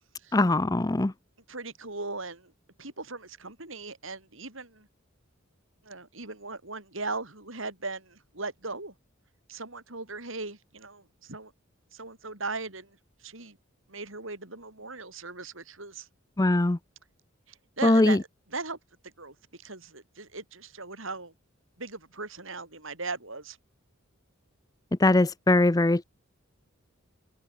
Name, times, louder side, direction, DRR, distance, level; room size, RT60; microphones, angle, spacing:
voice 1, 0.3-1.1 16.4-16.8 17.8-18.2 25.0-26.0, left 2 dB, 15° left, 0.5 m, -21 dB
voice 2, 1.5-2.5 2.8-4.9 5.8-8.9 9.5-11.5 11.9-13.6 13.9-16.1 17.5-18.8 19.0-21.3 21.8-23.6, right 3 dB, 65° right, 7.9 m, -38 dB
head